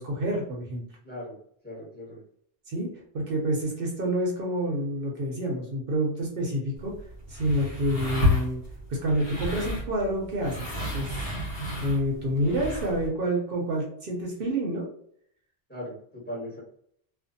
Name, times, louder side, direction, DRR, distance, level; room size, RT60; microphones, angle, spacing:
voice 1, 0.0-0.8 2.7-2.9 3.1-6.9 7.3-8.6 8.9-11.2 11.5-14.9, right 1 dB, 65° right, -1 dB, 0.8 m, -28 dB
voice 2, 1.0-1.3 1.6-2.2 15.7-16.6, left 1 dB, 10° left, -6 dB, 1.3 m, -38 dB
sound 1, 6.8-13.1, left 1 dB, 70° left, 1.2 m, -31 dB
2.5 x 2.5 x 2.6 m, 0.65 s
omnidirectional pair, 1.0 m